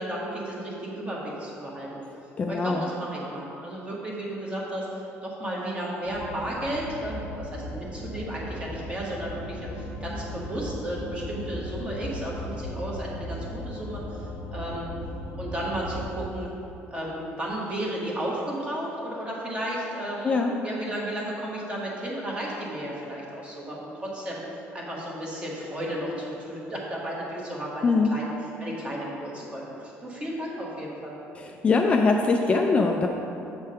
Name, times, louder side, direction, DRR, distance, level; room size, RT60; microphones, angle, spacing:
voice 1, 0.0-1.9 2.5-14.9 15.4-16.5 16.9-24.4 24.7-28.3 28.6-31.1, right 1 dB, 25° right, -4 dB, 1.3 m, -33 dB
voice 2, 2.4-2.8 20.2-20.5 27.8-28.1 31.3-33.1, left 4 dB, 25° left, 2 dB, 0.3 m, -22 dB
sound 1, 6.0-16.3, left 1 dB, 75° left, 0.8 m, -37 dB
7.4 x 3.5 x 5.5 m, 2.9 s
cardioid pair, 145°, 5 cm